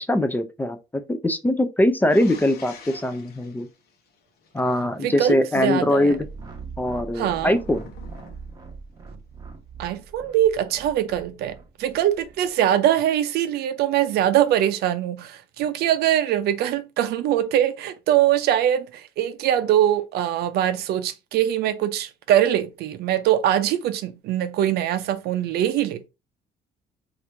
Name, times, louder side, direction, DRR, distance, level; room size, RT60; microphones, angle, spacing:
voice 1, 0.1-0.8 1.1-3.7 4.5-6.2 6.8-7.9, left 1 dB, 10° left, 0.4 m, -22 dB
sound 1, 2.1-4.8 7.2-8.6, left 6 dB, 65° left, 0.8 m, -46 dB
voice 2, 5.0-6.2 7.1-7.6 9.8-26.1, right 11 dB, 70° right, 0.5 m, -22 dB
sound 2, 6.1-12.5, right 4 dB, 25° right, 0.8 m, -41 dB
2.9 x 2.5 x 3.2 m
cardioid pair, 110°, 17 cm